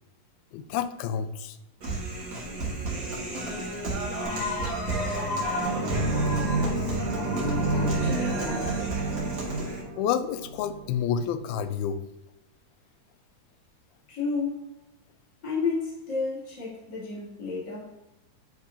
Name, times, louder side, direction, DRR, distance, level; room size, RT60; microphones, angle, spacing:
voice 1, 0.5-1.6 6.4-6.5 10.0-12.0, left 8 dB, 85° left, 2.4 m, -29 dB
Human voice, 1.8-9.8, right 2 dB, 55° right, 0.9 m, -33 dB
sound 1, 4.2-9.7, left 4 dB, 65° left, 1.9 m, -35 dB
sound 2, 5.6-11.0, right 3 dB, 75° right, 1.4 m, -29 dB
voice 2, 7.3-8.9 14.1-14.8 15.4-18.0, left 4 dB, 30° left, 2.8 m, -32 dB
9.5 x 4.8 x 2.7 m
omnidirectional pair, 4.4 m